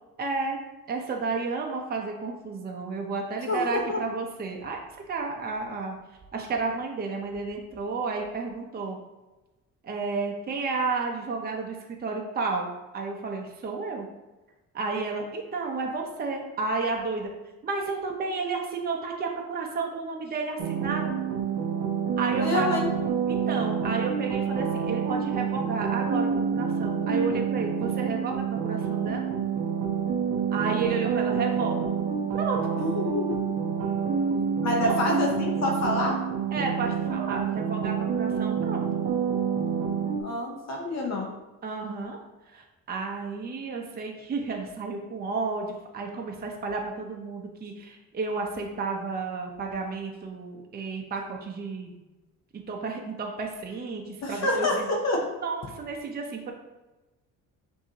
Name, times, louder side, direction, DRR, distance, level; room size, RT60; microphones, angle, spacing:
voice 1, 0.2-0.6 0.9-4.8 5.1-6.0 6.3-9.0 9.8-12.7 12.9-14.1 14.7-17.3 17.6-21.1 22.2-22.8 23.3-29.3 30.5-31.9 32.3-32.6 34.8-35.0 36.5-39.0 41.6-42.2 42.5-52.0 52.7-54.9 55.4-56.5, right 4 dB, 25° right, 1 dB, 0.6 m, -32 dB
voice 2, 3.5-4.0 22.4-22.9 32.8-33.4 34.6-36.2 40.2-41.3 54.2-55.2, left 2 dB, 50° left, 0 dB, 0.8 m, -27 dB
sound 1, 20.6-40.2, right 7 dB, 75° right, 0.6 m, -28 dB
5.8 x 2.7 x 2.8 m, 1.1 s
cardioid pair, 105°, 35 cm